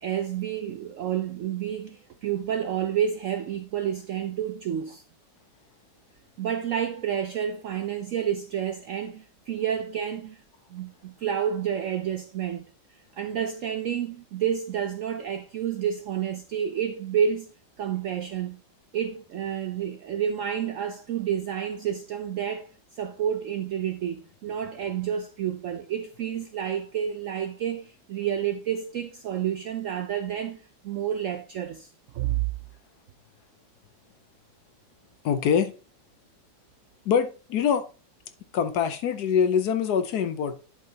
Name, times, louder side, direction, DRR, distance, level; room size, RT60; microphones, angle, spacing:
voice 1, 0.0-5.0 6.4-10.4 10.7-12.6 13.2-17.5 17.8-18.6 18.9-22.7 23.0-31.9 32.1-32.5, right 9 dB, 75° right, 0.7 m, -29 dB
voice 2, 35.2-35.7 37.1-37.9 38.5-40.5, left 7 dB, 65° left, 1.2 m, -24 dB
11.0 x 4.9 x 2.8 m
omnidirectional pair, 1.9 m